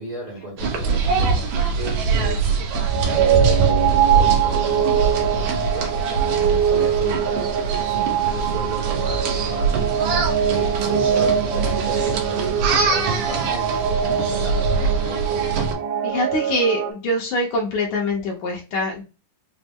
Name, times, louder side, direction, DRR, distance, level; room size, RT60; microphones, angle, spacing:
voice 1, 0.0-2.8 3.1-9.8 10.5-14.8 15.0-15.5, right 3 dB, 40° right, 1.2 m, -34 dB
sound 1, 0.6-15.7, right 4 dB, 70° right, 1.9 m, -23 dB
sound 2, 2.8-16.9, right 8 dB, 90° right, 2.3 m, -23 dB
voice 2, 16.0-19.0, left 1 dB, 70° left, 2.0 m, -24 dB
6.0 x 2.0 x 3.5 m
omnidirectional pair, 4.0 m